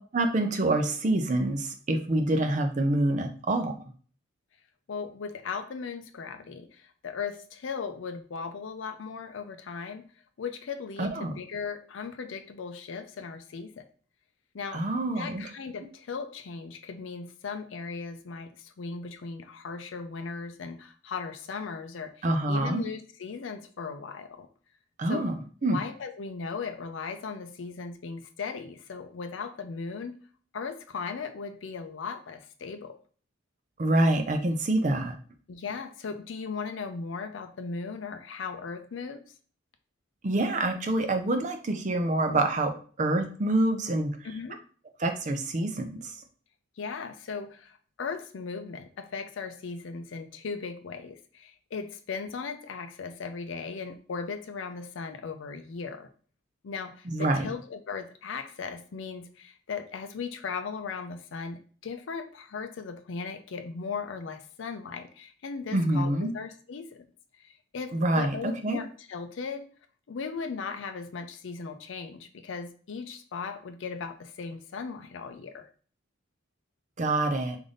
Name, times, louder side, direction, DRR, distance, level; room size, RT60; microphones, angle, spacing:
voice 1, 0.1-3.7 11.0-11.3 14.7-15.4 22.2-22.8 25.0-25.3 25.6-25.8 33.8-35.1 40.2-42.7 43.0-44.1 45.0-46.0 57.1-57.5 65.7-66.3 67.9-68.8 77.0-77.6, right 2 dB, 40° right, 6 dB, 0.5 m, -26 dB
voice 2, 4.9-10.0 10.4-13.8 14.5-14.9 15.1-24.5 25.1-25.3 25.6-30.2 30.5-32.9 35.5-39.2 44.2-44.6 46.8-56.1 56.6-67.1 67.4-69.7 70.1-75.7, left 5 dB, 75° left, 7 dB, 0.5 m, -37 dB
3.4 x 2.6 x 3.8 m, 0.42 s
head